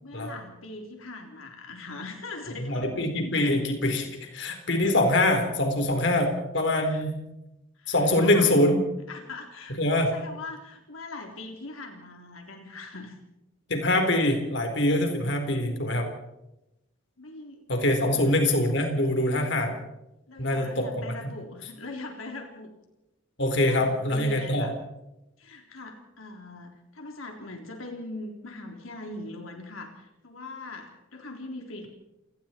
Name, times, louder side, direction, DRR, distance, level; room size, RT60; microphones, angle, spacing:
voice 1, 0.0-3.3 6.8-7.1 7.8-8.7 9.1-13.2 17.2-17.6 18.0-18.3 20.3-22.7 23.7-24.8 25.4-31.9, left 2 dB, 85° left, 2 dB, 3.6 m, -41 dB
voice 2, 2.7-4.1 4.3-7.2 7.9-8.8 9.8-10.2 13.7-16.1 17.7-19.8 20.4-21.1 23.4-24.7, left 1 dB, 60° left, 4 dB, 4.2 m, -24 dB
29.0 x 20.0 x 4.5 m, 0.90 s
head